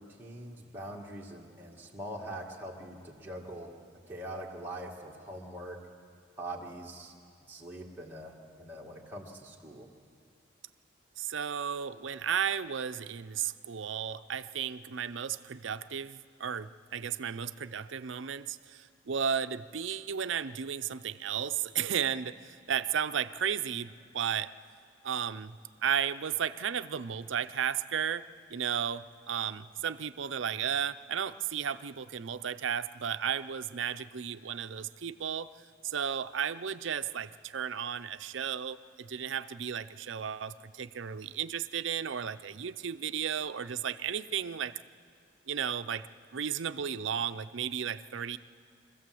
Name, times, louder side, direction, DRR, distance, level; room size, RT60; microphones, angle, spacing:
voice 1, 0.0-3.7 4.1-5.8 6.4-7.1 7.5-9.9, right 1 dB, 10° right, -3 dB, 1.9 m, -43 dB
voice 2, 11.2-24.5 25.0-25.5 25.8-28.2 28.5-35.5 35.8-44.7 45.5-48.4, right 8 dB, 75° right, 12 dB, 0.5 m, -34 dB
24.5 x 15.0 x 7.7 m, 2.4 s
head